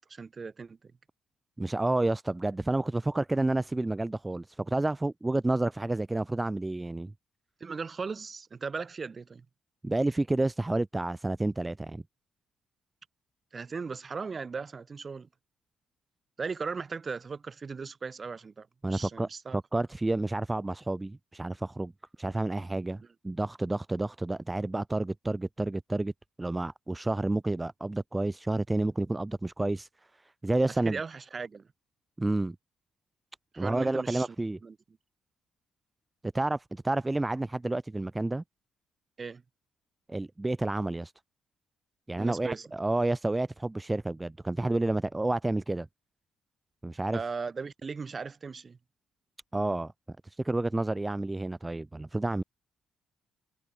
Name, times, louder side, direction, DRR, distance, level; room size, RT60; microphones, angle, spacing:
voice 1, 0.1-0.8 7.6-9.5 13.5-15.3 16.4-19.8 30.7-31.7 33.5-34.4 34.6-34.8 39.2-39.4 42.2-42.7 47.1-48.8, right 5 dB, 35° right, 0.9 m, -37 dB
voice 2, 1.6-7.1 9.8-12.0 18.8-21.9 22.2-26.1 26.4-29.9 30.4-31.0 32.2-32.6 33.6-34.6 36.3-38.4 40.1-41.1 42.1-45.9 46.8-47.2 49.5-49.9 50.2-52.4, right 2 dB, 15° right, 0.4 m, -30 dB
cardioid pair, 90°, 0 cm